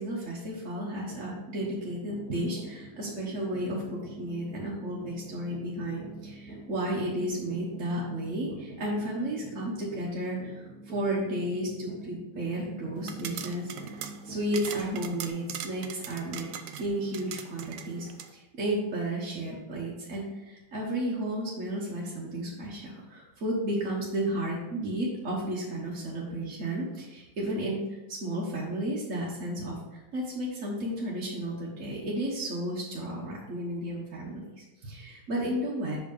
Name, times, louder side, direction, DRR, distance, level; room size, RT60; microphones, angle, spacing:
voice 1, 0.0-13.7 14.2-16.5 16.8-36.0, right 1 dB, 45° right, -5 dB, 1.4 m, -33 dB
sound 1, 1.0-15.3, right 2 dB, 5° left, 1.6 m, -45 dB
sound 2, 13.0-18.3, right 8 dB, 70° right, 1.1 m, -41 dB
5.9 x 5.1 x 5.4 m, 1.1 s
omnidirectional pair, 2.2 m